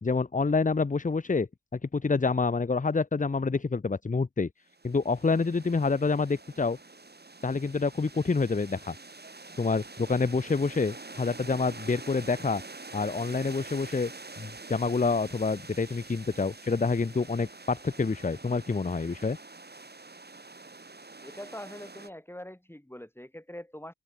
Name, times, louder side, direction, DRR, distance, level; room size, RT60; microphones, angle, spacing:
voice 1, 0.0-1.5 1.9-4.5 4.8-6.8 7.4-8.9 9.6-12.6 12.9-14.1 14.4-19.4, left 4 dB, 20° left, 0.8 m, -27 dB
sound 1, 4.7-22.1, right 3 dB, 25° right, 2.8 m, -46 dB
voice 2, 21.2-23.9, left 1 dB, 5° left, 5.9 m, -43 dB
open air
supercardioid pair, 45°, 36 cm